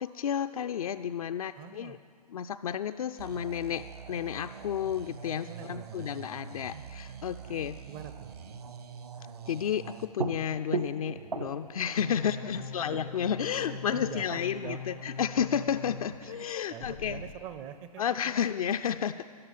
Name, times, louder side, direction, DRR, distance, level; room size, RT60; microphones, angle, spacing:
voice 1, 0.0-2.0 2.3-7.8 9.5-17.2 18.0-19.2, left 8 dB, 65° left, 8 dB, 0.4 m, -32 dB
voice 2, 1.5-2.0 5.5-6.1 7.9-8.3 12.3-12.7 13.7-14.8 15.5-15.6 16.2-18.2 18.4-18.6, right 9 dB, 25° right, 11 dB, 0.4 m, -44 dB
sound 1, 3.2-10.1, right 7 dB, 75° right, 1.3 m, -45 dB
sound 2, 10.2-15.1 15.5-15.6 16.0-17.0, right 4 dB, 90° right, 0.9 m, -39 dB
sound 3, 12.0-16.1 16.8-17.3, left 5 dB, 90° left, 1.6 m, -42 dB
13.5 x 11.0 x 7.2 m, 2.3 s
figure-of-eight pair, 125°, 20 cm